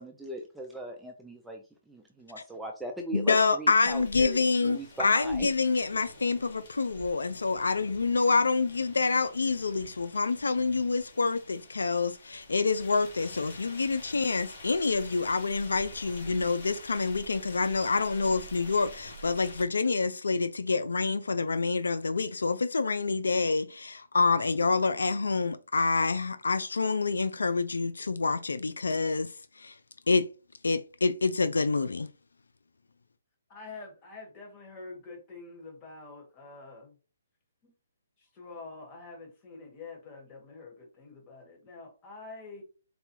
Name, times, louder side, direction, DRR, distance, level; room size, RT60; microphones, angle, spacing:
voice 1, 0.0-5.5, right 1 dB, 5° right, 0.4 m, -40 dB
voice 2, 3.1-29.3 29.6-29.7 30.1-30.2 30.6-32.1, left 4 dB, 90° left, 0.3 m, -27 dB
sound 1, 3.9-19.7, left 1 dB, 55° left, 1.6 m, -48 dB
voice 3, 33.5-36.9 37.6-37.7 38.2-42.6, left 3 dB, 25° left, 1.5 m, -46 dB
4.1 x 2.2 x 3.0 m
hypercardioid pair, 150°, 0 cm